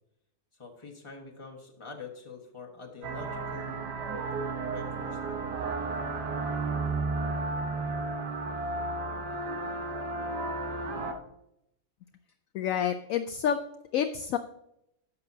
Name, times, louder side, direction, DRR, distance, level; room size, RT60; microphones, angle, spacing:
voice 1, 0.6-3.9 4.7-5.4, left 4 dB, 20° left, 0 dB, 1.3 m, -45 dB
sound 1, 3.0-11.1, right 3 dB, 90° right, 1.6 m, -33 dB
Bowed string instrument, 3.9-8.0, right 9 dB, 55° right, 0.9 m, -46 dB
voice 2, 12.5-13.6 13.9-14.4, left 8 dB, 70° left, 9 dB, 0.8 m, -28 dB
12.0 x 8.2 x 2.7 m, 0.81 s
omnidirectional pair, 1.7 m